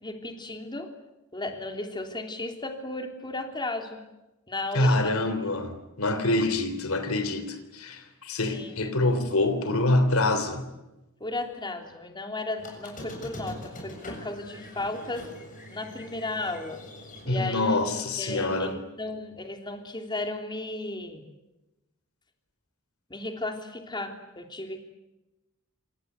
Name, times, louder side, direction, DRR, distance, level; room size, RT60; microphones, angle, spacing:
voice 1, 0.0-0.9 1.3-4.0 4.5-5.3 8.5-8.7 11.2-15.3 15.7-16.8 17.2-21.2 23.1-24.8, left 2 dB, 20° left, 3.1 m, -35 dB
voice 2, 4.7-10.7 17.3-18.8, left 2 dB, 75° left, 3.4 m, -26 dB
Squeak, 12.6-17.9, left 1 dB, 40° left, 7.5 m, -43 dB
28.0 x 26.5 x 8.1 m
head